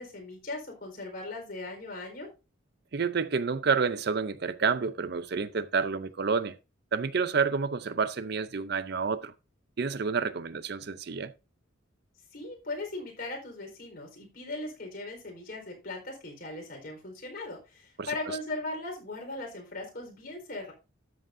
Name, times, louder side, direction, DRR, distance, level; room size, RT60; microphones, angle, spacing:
voice 1, 0.0-2.3 12.3-20.7, left 2 dB, 50° left, 4.3 m, -38 dB
voice 2, 2.9-6.6 6.9-9.3 9.8-11.3 18.0-18.4, right 5 dB, 55° right, 0.5 m, -29 dB
13.0 x 7.9 x 2.6 m
head